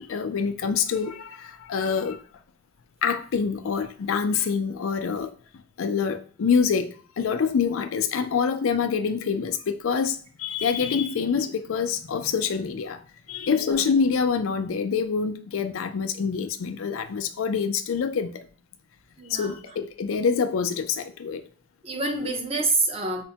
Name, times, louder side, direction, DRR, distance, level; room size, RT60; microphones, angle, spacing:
voice 1, 0.0-2.2 3.0-5.3 5.8-13.0 13.3-18.5 19.3-21.4, left 6 dB, 90° left, 0.4 m, -26 dB
voice 2, 13.5-13.8 19.2-19.6 21.8-23.2, right 2 dB, 30° right, 0.6 m, -27 dB
4.2 x 2.1 x 2.8 m
head